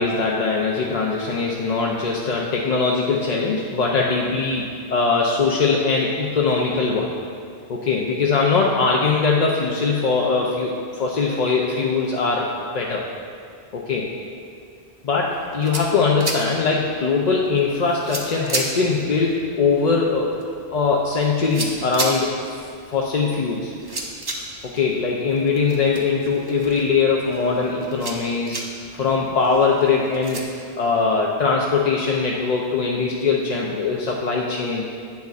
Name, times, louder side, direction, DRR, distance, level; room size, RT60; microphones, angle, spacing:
voice 1, 0.0-7.1 7.7-13.0 13.7-14.1 15.0-20.4 20.7-22.6 22.9-23.7 24.6-28.6 28.9-30.4 30.8-34.8, left 4 dB, 50° left, -2 dB, 0.6 m, -21 dB
sound 1, 15.3-30.4, right 1 dB, 25° right, 0.7 m, -34 dB
10.5 x 8.3 x 2.4 m, 2.4 s
omnidirectional pair, 1.1 m